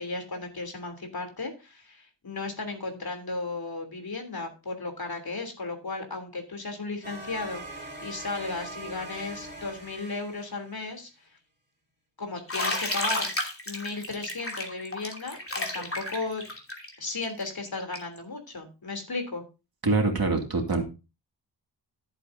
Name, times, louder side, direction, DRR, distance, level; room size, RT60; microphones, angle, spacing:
voice 1, 0.0-11.1 12.2-13.3 13.7-16.4 17.0-19.4, left 3 dB, 55° left, 5 dB, 3.2 m, -35 dB
sound 1, 7.0-11.0, right 2 dB, 25° right, 4.0 m, -42 dB
Bathtub (filling or washing), 12.5-18.2, left 1 dB, 30° left, 2.8 m, -32 dB
voice 2, 19.8-20.8, right 3 dB, 55° right, 3 dB, 2.4 m, -24 dB
14.0 x 7.9 x 2.7 m, 0.30 s
wide cardioid pair, 75°, 44 cm